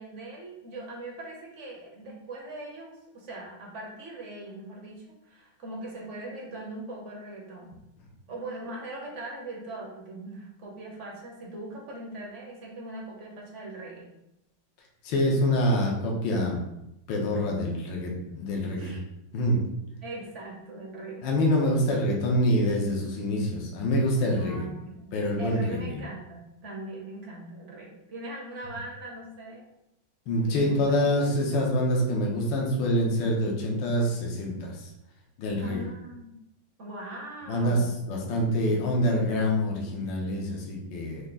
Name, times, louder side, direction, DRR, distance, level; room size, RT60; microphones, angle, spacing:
voice 1, 0.0-7.8 8.3-14.1 18.7-19.0 20.0-21.3 24.4-25.1 25.4-29.6 30.6-31.0 35.6-36.3 36.8-38.0, right 2 dB, 50° right, -3 dB, 1.0 m, -40 dB
voice 2, 15.0-16.6 17.1-18.9 19.3-19.6 21.2-24.7 25.1-26.0 30.3-34.9 35.4-35.8 37.5-37.8 38.1-41.3, equal, 75° left, -1 dB, 1.6 m, -26 dB
5.8 x 2.1 x 3.8 m, 0.86 s
omnidirectional pair, 2.2 m